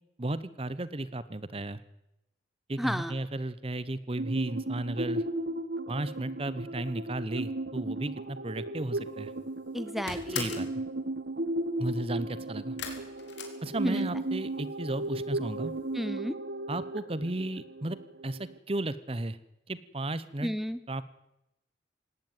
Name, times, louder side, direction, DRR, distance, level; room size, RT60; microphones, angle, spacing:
voice 1, 0.2-1.8 2.7-5.2 5.9-9.3 10.3-10.7 11.8-12.8 13.6-15.7 16.7-19.4 19.7-20.5 20.9-21.0, right 2 dB, 30° right, 16 dB, 0.9 m, -34 dB
voice 2, 2.8-3.1 9.7-10.6 13.8-14.0 15.9-16.4 20.4-20.8, equal, ahead, 13 dB, 0.8 m, -32 dB
sound 1, 4.2-18.6, right 1 dB, 55° right, 1.4 m, -35 dB
sound 2, 9.1-9.4 9.7-10.8 12.8-14.3 14.6-15.2 15.5-15.6 15.9-16.0, left 7 dB, 70° left, 4.1 m, -40 dB
18.5 x 17.5 x 9.1 m, 0.89 s
head